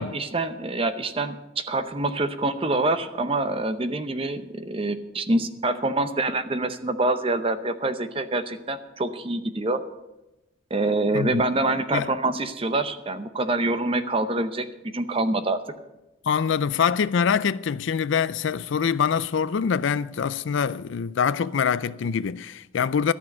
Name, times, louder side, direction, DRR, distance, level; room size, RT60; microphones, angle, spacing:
voice 1, 0.0-9.8 10.7-14.7 14.9-15.6, right 2 dB, 25° right, 0.7 m, -26 dB
voice 2, 16.2-23.1, left 7 dB, 65° left, 0.4 m, -24 dB
13.0 x 6.3 x 8.8 m
head